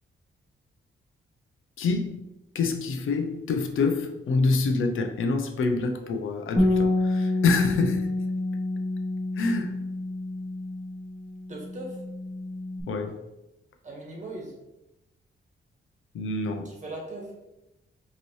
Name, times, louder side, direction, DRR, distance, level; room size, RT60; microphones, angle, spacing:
voice 1, 1.8-2.2 2.5-8.1 9.3-9.8 12.9-13.3 16.1-16.7, left 4 dB, 85° left, 5 dB, 0.6 m, -26 dB
Bass guitar, 6.6-12.8, left 2 dB, 20° left, 0.8 m, -28 dB
voice 2, 11.5-12.0 13.8-14.5 16.6-17.3, right 1 dB, 35° right, -1 dB, 1.3 m, -38 dB
5.3 x 3.0 x 3.1 m, 0.94 s
wide cardioid pair, 125°, 20 cm